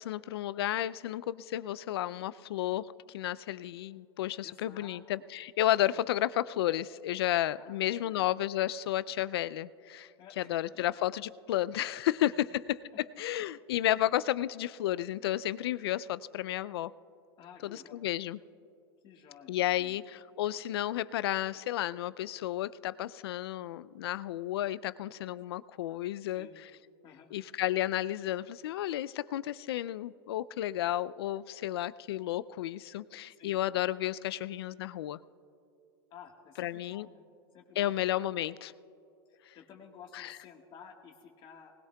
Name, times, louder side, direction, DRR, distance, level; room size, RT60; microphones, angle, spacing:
voice 1, 0.0-10.1 10.4-12.4 13.2-16.9 17.6-18.4 19.5-26.5 27.3-35.2 36.6-37.1 37.8-38.7 40.1-40.3, left 13 dB, 80° left, 17 dB, 0.4 m, -32 dB
voice 2, 4.4-5.0 5.9-6.0 7.5-8.3 10.2-10.8 12.3-12.4 12.9-13.0 13.9-14.0 17.4-18.0 19.0-20.0 26.3-26.5 27.0-27.3 33.3-33.6 36.1-37.2 37.5-37.9 39.3-41.7, left 7 dB, 40° left, 2 dB, 1.5 m, -53 dB
19.5 x 19.5 x 2.3 m, 2.6 s
hypercardioid pair, 115°, 13 cm